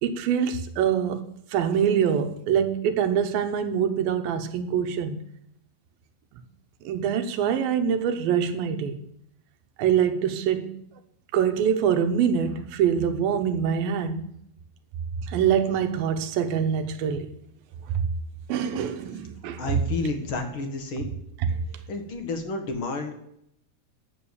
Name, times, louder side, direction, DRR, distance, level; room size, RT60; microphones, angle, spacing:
voice 1, 0.0-5.2 6.9-9.0 9.8-10.8 11.3-14.3 15.3-17.3 17.9-18.1 18.5-19.8 21.4-21.5, right 8 dB, 85° right, 2.9 m, -24 dB
voice 2, 19.6-21.1 21.9-23.1, left 3 dB, 50° left, 1.8 m, -30 dB
11.5 x 8.9 x 7.1 m
omnidirectional pair, 4.0 m